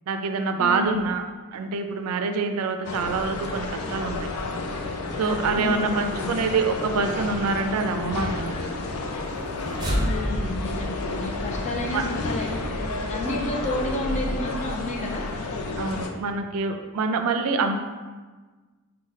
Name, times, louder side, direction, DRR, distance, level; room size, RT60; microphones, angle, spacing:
voice 1, 0.1-1.2 1.5-4.3 5.2-8.6 11.9-12.0 15.8-17.8, right 4 dB, 75° right, 6 dB, 0.4 m, -26 dB
voice 2, 0.6-1.1 5.5-6.3 9.9-15.2, left 1 dB, 30° left, 0 dB, 0.6 m, -31 dB
sound 1, 2.8-16.1, left 2 dB, 85° left, 0.5 m, -31 dB
sound 2, 9.2-14.5, equal, 20° right, 0.7 m, -32 dB
4.9 x 2.2 x 4.0 m, 1.3 s
head